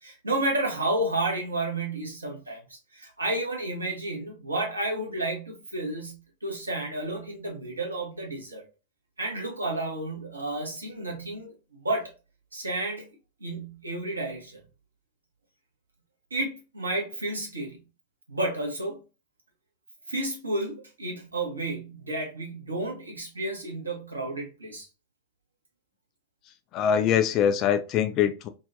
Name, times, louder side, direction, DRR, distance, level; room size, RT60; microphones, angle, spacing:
voice 1, 0.0-8.6 9.2-12.1 12.5-13.1 13.4-14.6 16.3-17.8 18.3-19.0 20.1-24.9, right 2 dB, 80° right, 0.7 m, -31 dB
voice 2, 26.7-28.5, left 8 dB, 35° left, 0.3 m, -23 dB
2.6 x 2.1 x 2.4 m
figure-of-eight pair, 90°, 0 cm